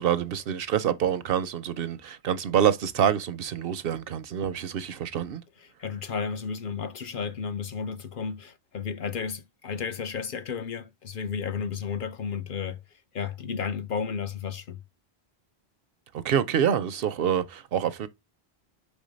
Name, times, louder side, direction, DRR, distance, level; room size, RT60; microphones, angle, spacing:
voice 1, 0.0-5.4 16.1-18.1, right 9 dB, 65° right, 0.7 m, -26 dB
voice 2, 5.8-12.8 13.1-14.8, left 6 dB, 60° left, 0.7 m, -33 dB
5.4 x 3.5 x 5.0 m
omnidirectional pair, 1.1 m